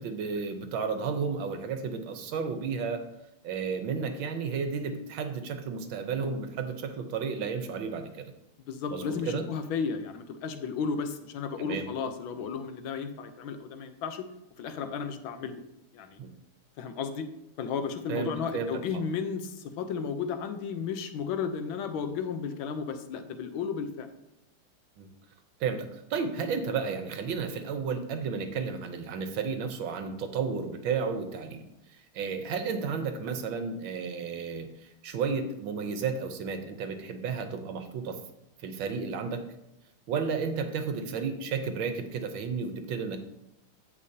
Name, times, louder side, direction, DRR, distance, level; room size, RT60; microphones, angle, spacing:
voice 1, 0.0-3.1 3.4-8.3 8.9-9.5 11.6-11.9 16.2-16.3 18.1-19.0 22.1-22.2 25.0-25.1 25.6-31.6 31.9-38.2 38.6-39.4 40.1-43.2, right 5 dB, 70° right, 7 dB, 1.6 m, -32 dB
voice 2, 8.7-14.3 14.6-15.6 15.9-16.2 16.8-17.2 17.6-24.1, left 6 dB, 75° left, 8 dB, 1.5 m, -33 dB
15.0 x 5.2 x 2.8 m, 0.88 s
omnidirectional pair, 2.3 m